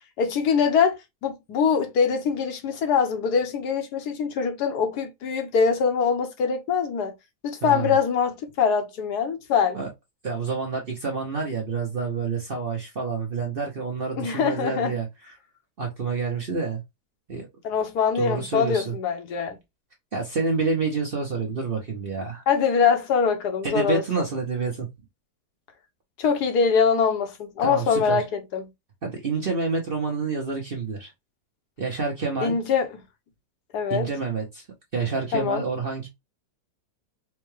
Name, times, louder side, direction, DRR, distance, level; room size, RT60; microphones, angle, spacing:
voice 1, 0.2-7.1 7.4-9.8 14.2-14.9 17.6-19.6 22.5-24.2 26.2-28.7 32.4-32.9 33.7-34.1 35.3-35.6, left 6 dB, 70° left, 1.3 m, -23 dB
voice 2, 7.6-7.9 9.7-9.9 10.2-15.1 15.8-16.8 17.3-17.5 18.1-18.9 20.1-22.4 23.6-24.9 27.6-28.2 29.0-31.1 31.8-32.5 33.9-34.6 34.9-36.1, right 4 dB, 45° right, 0.8 m, -28 dB
4.4 x 2.2 x 3.1 m
omnidirectional pair, 1.8 m